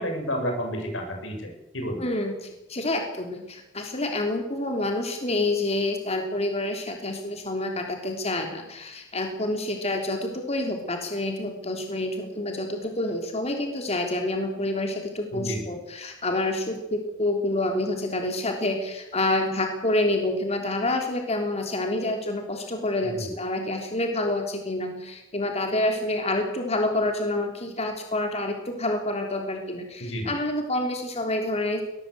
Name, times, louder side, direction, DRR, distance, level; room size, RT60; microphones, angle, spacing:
voice 1, 0.0-2.0 15.3-15.6 23.0-23.3 30.0-30.3, equal, 85° left, 3 dB, 7.3 m, -31 dB
voice 2, 2.0-31.8, left 1 dB, 35° left, 3 dB, 3.4 m, -28 dB
22.5 x 18.5 x 8.1 m, 0.95 s
head